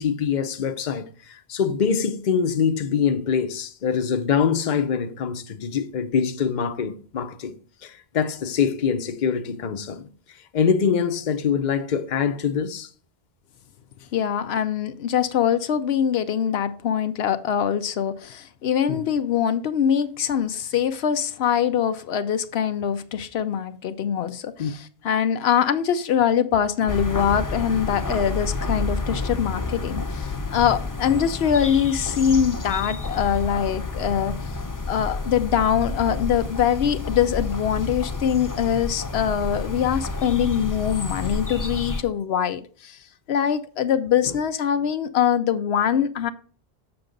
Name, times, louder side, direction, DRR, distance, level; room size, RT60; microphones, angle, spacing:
voice 1, 0.0-7.5 7.8-10.1 10.5-12.9 18.9-19.1 24.6-24.7 39.6-39.7 44.2-44.4, left 7 dB, 50° left, 0.8 m, -24 dB
voice 2, 14.1-34.5 34.9-43.0 43.3-46.3, left 8 dB, 85° left, 0.9 m, -23 dB
sound 1, 26.9-42.0, left 3 dB, 25° left, 0.6 m, -30 dB
6.9 x 6.9 x 3.8 m
omnidirectional pair, 1.0 m